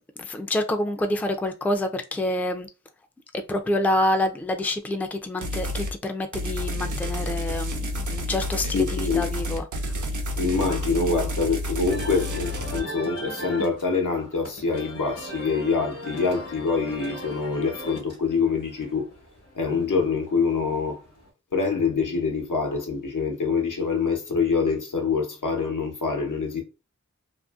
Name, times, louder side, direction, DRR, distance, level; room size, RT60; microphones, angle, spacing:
voice 1, 0.2-2.7 3.3-9.7, left 1 dB, 5° left, 0.3 m, -27 dB
sound 1, 5.4-5.9 6.3-12.8, left 1 dB, 75° right, 0.6 m, -29 dB
voice 2, 7.9-8.3 8.7-9.3 10.4-19.1 19.5-21.0 21.5-26.6, left 4 dB, 80° left, 0.8 m, -25 dB
sound 2, 11.9-21.3, right 1 dB, 55° left, 0.9 m, -39 dB
2.6 x 2.5 x 2.4 m
wide cardioid pair, 60°, 31 cm